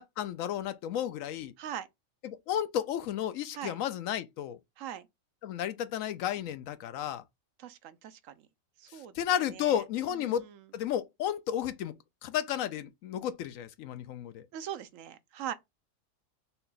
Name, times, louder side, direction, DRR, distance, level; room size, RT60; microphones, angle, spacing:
voice 1, 0.0-1.5 2.2-4.6 5.4-7.2 9.1-10.5 10.7-11.9 12.2-14.5, left 10 dB, 80° left, 1.0 m, -32 dB
voice 2, 1.6-1.9 3.5-3.8 4.8-5.0 7.6-8.5 8.8-9.8 10.1-10.7 14.5-15.5, right 10 dB, 75° right, 1.0 m, -41 dB
5.7 x 2.3 x 3.9 m
omnidirectional pair, 1.4 m